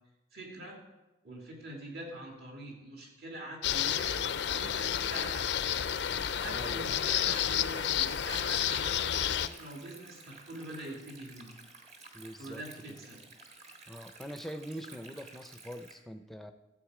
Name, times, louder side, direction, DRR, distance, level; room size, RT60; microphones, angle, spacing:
voice 1, 0.3-0.8 1.2-4.2 4.5-5.5 6.2-11.5 12.4-13.2, right 1 dB, 55° right, -1 dB, 2.6 m, -44 dB
sound 1, 3.6-9.5, left 9 dB, 70° left, 0.4 m, -31 dB
voice 2, 6.5-7.2 12.1-13.0 13.9-16.5, equal, ahead, 7 dB, 0.5 m, -44 dB
Stream, 7.9-15.9, right 3 dB, 35° right, 1.5 m, -53 dB
13.5 x 8.0 x 4.9 m, 1.0 s
head